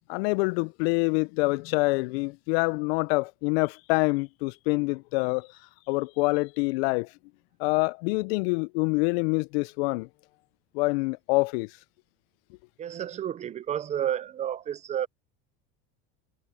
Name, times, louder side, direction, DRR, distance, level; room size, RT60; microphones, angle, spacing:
voice 1, 0.1-5.5 5.9-7.1 7.6-10.1 10.7-11.7, left 27 dB, 85° left, 0.5 m, -26 dB
voice 2, 12.8-15.1, right 10 dB, 25° right, 0.4 m, -31 dB
cardioid pair, 145°, 30 cm